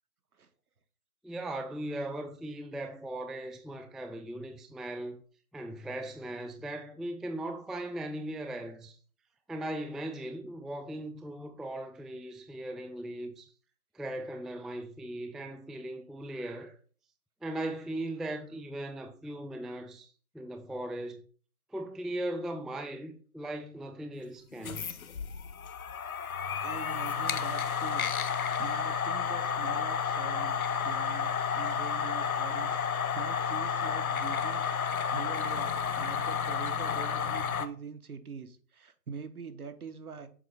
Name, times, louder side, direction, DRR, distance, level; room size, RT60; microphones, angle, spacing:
voice 1, 1.2-5.2 5.5-9.0 9.5-13.5 13.9-16.7 17.4-20.1 20.3-21.2 21.7-24.8, right 1 dB, ahead, 0.3 m, -38 dB
sound 1, 24.5-37.7, left 7 dB, 60° left, 0.7 m, -31 dB
voice 2, 26.6-28.1 28.4-40.3, right 5 dB, 65° right, 1.1 m, -44 dB
7.4 x 3.0 x 5.0 m
hypercardioid pair, 180°, 47 cm